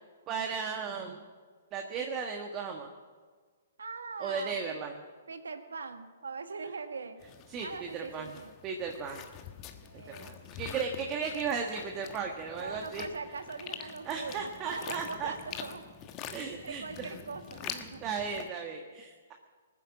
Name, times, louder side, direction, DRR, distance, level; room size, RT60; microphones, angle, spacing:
voice 1, 0.3-1.2 1.7-2.9 4.2-5.0 7.5-8.4 8.6-9.2 10.0-13.1 13.8-15.3 16.3-17.1 17.6-19.3, right 6 dB, 25° right, 3 dB, 1.4 m, -36 dB
voice 2, 3.8-4.8 5.3-7.2 7.6-8.5 9.8-10.5 12.6-15.8 16.5-18.0, right 4 dB, 85° right, 9 dB, 1.5 m, -41 dB
sound 1, 7.2-18.5, left 9 dB, 30° left, 1.3 m, -46 dB
20.0 x 9.9 x 7.2 m, 1.5 s
hypercardioid pair, 135°, 0 cm